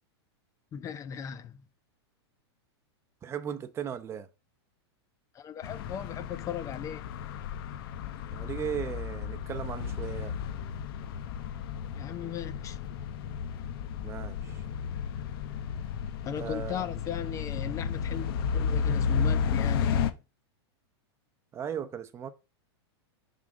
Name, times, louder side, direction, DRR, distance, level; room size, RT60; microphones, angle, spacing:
voice 1, 0.7-1.6 5.3-7.0 11.9-12.8 16.3-18.3 18.5-20.2, left 8 dB, 25° left, 0.5 m, -37 dB
voice 2, 3.2-4.3 8.3-10.4 14.0-14.6 16.4-16.8 21.5-22.3, right 8 dB, 20° right, 0.8 m, -37 dB
sound 1, 5.6-20.1, left 7 dB, 60° left, 1.0 m, -33 dB
7.1 x 3.7 x 6.2 m
hypercardioid pair, 135°, 14 cm